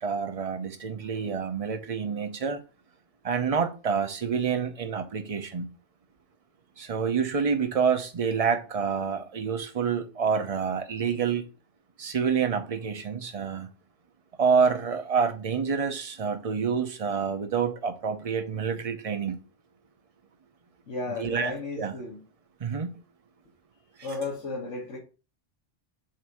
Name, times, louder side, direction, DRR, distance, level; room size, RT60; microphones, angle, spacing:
voice 1, 0.0-2.6 3.2-5.7 6.8-11.4 12.0-13.7 14.4-19.4 21.2-22.0 22.6-23.0, right 6 dB, 35° right, 0.7 m, -27 dB
voice 2, 20.9-22.2 24.0-25.0, left 3 dB, 80° left, 1.6 m, -34 dB
7.5 x 2.7 x 4.7 m
omnidirectional pair, 1.2 m